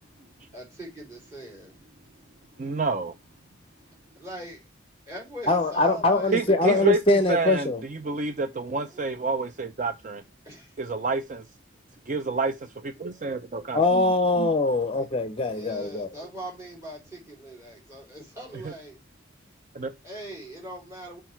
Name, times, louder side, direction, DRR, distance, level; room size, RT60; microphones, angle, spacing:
voice 1, 0.5-1.8 4.1-4.6 5.1-6.9 8.8-9.2 10.4-10.8 15.5-19.0 20.0-21.2, right 1 dB, 15° right, 4.0 m, -41 dB
voice 2, 2.6-3.1 6.3-10.2 10.8-11.4 12.1-14.0 14.4-14.5 18.6-18.7 19.7-19.9, right 3 dB, 40° right, 0.5 m, -28 dB
voice 3, 5.5-7.8 13.7-16.1, left 2 dB, 25° left, 0.7 m, -23 dB
6.3 x 4.5 x 4.4 m
head